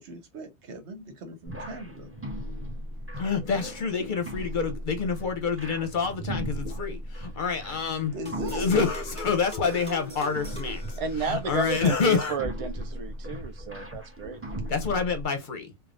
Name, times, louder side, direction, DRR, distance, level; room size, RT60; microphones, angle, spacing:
voice 1, 0.0-2.1 8.1-8.9, right 1 dB, 80° right, 1.2 m, -40 dB
sound 1, 1.5-15.2, equal, 15° right, 0.7 m, -37 dB
voice 2, 3.2-8.1 8.5-12.4 14.7-15.7, left 5 dB, 55° left, 0.7 m, -27 dB
sound 2, 8.3-11.7, right 1 dB, 5° left, 1.1 m, -42 dB
voice 3, 11.0-14.4, right 5 dB, 65° right, 0.3 m, -32 dB
3.3 x 2.3 x 2.4 m
omnidirectional pair, 1.1 m